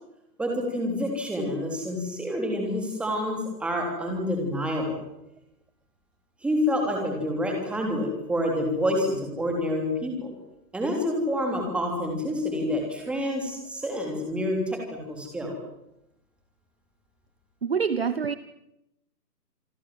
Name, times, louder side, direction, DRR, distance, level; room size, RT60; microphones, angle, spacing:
voice 1, 0.4-5.0 6.4-10.3 10.7-15.6, left 1 dB, ahead, 1 dB, 3.5 m, -28 dB
voice 2, 17.6-18.3, right 6 dB, 40° right, 15 dB, 0.9 m, -25 dB
27.5 x 23.0 x 7.8 m, 0.85 s
hypercardioid pair, 160°, 49 cm